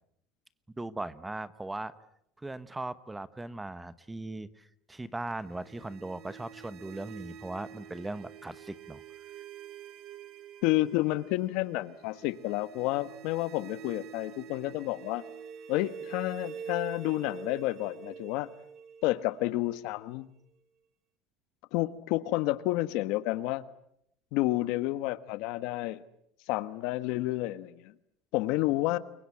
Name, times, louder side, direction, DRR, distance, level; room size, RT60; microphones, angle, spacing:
voice 1, 0.7-1.9 2.4-9.0, right 2 dB, 10° right, 14 dB, 1.0 m, -39 dB
sound 1, 5.2-20.1, right 7 dB, 50° right, 3.0 m, -46 dB
voice 2, 10.6-15.2 15.7-18.5 19.0-20.3 21.7-23.6 24.3-26.0 26.5-27.9 28.3-29.0, left 17 dB, 70° left, 13 dB, 1.4 m, -30 dB
29.0 x 23.5 x 8.6 m, 0.74 s
cardioid pair, 140°, 0 cm